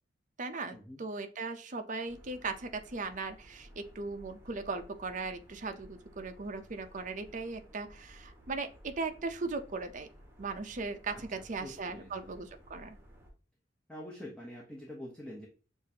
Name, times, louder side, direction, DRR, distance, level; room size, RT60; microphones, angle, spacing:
voice 1, 0.4-10.1 10.4-13.0, right 3 dB, 45° right, 6 dB, 0.6 m, -38 dB
sound 1, 2.1-13.3, equal, 15° right, 1.1 m, -56 dB
voice 2, 11.1-12.3 13.9-15.5, left 1 dB, 5° left, -3 dB, 0.8 m, -46 dB
6.7 x 2.6 x 2.8 m, 0.38 s
head